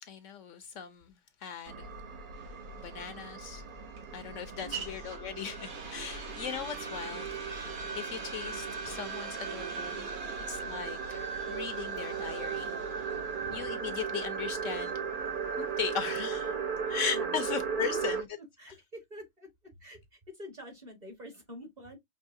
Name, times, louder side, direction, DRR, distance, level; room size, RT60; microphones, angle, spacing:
voice 1, 0.1-1.1 1.4-1.9 2.8-3.6 4.1-10.1 10.5-12.8 13.5-14.9 15.6-16.5 16.9-18.3, left 8 dB, 70° left, 0.8 m, -38 dB
sound 1, 1.7-18.2, right 5 dB, 50° right, 0.7 m, -37 dB
sound 2, 2.3-16.2, right 6 dB, 75° right, 1.6 m, -45 dB
voice 2, 4.5-4.9 16.9-17.3 17.8-18.0 18.4-19.5 19.8-22.0, equal, 30° right, 1.3 m, -47 dB
5.4 x 2.9 x 2.5 m
omnidirectional pair, 1.5 m